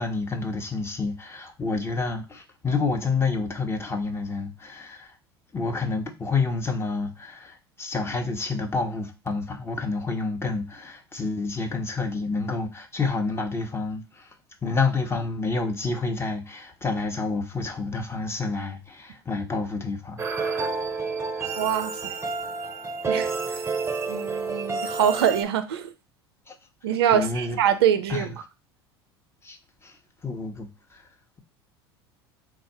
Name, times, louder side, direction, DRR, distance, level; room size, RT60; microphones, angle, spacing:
voice 1, 0.0-5.2 5.5-14.3 14.6-20.6 26.5-26.6 27.1-27.6 28.1-28.3 29.4-29.6 29.8-30.0 30.2-31.0, left 4 dB, 20° left, 0.9 m, -29 dB
sound 1, 20.2-25.4, right 4 dB, 20° right, 0.7 m, -29 dB
voice 2, 21.6-22.2 23.1-23.6 24.1-25.9 26.8-28.3, right 9 dB, 75° right, 0.5 m, -24 dB
3.5 x 2.3 x 4.2 m
hypercardioid pair, 75°, 13 cm